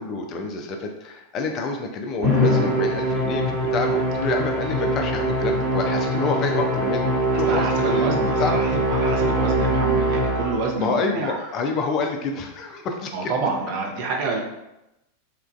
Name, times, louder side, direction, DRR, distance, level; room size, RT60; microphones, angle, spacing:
voice 1, 0.0-8.6 10.8-13.3, left 3 dB, 35° left, 4 dB, 0.3 m, -28 dB
Musical instrument, 2.2-10.8, right 1 dB, 25° right, 1.1 m, -22 dB
voice 2, 7.3-11.5 13.1-14.4, right 3 dB, 45° right, 0 dB, 0.5 m, -28 dB
2.9 x 2.2 x 2.3 m, 0.91 s
figure-of-eight pair, 90°, 0 cm